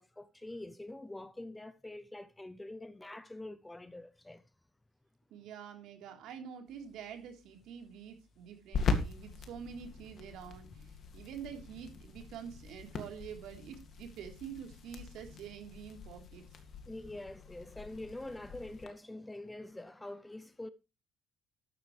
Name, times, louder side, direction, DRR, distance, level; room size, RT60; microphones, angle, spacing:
voice 1, 0.0-4.4 16.9-20.7, left 1 dB, 5° left, 0.5 m, -45 dB
voice 2, 5.3-16.4, right 8 dB, 65° right, 3.6 m, -47 dB
sound 1, 6.7-18.9, left 4 dB, 40° left, 2.1 m, -41 dB
13.0 x 11.5 x 3.2 m
cardioid pair, 175°, 0 cm